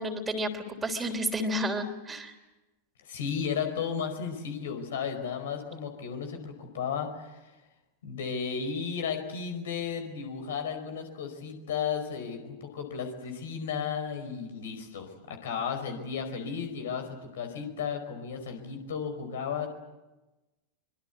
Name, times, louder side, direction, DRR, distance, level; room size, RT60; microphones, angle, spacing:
voice 1, 0.0-2.3, equal, 15° right, 2 dB, 3.4 m, -31 dB
voice 2, 3.0-7.4 8.0-19.7, left 6 dB, 60° left, 6 dB, 4.9 m, -34 dB
25.0 x 24.0 x 8.2 m, 1.1 s
figure-of-eight pair, 90°, 0 cm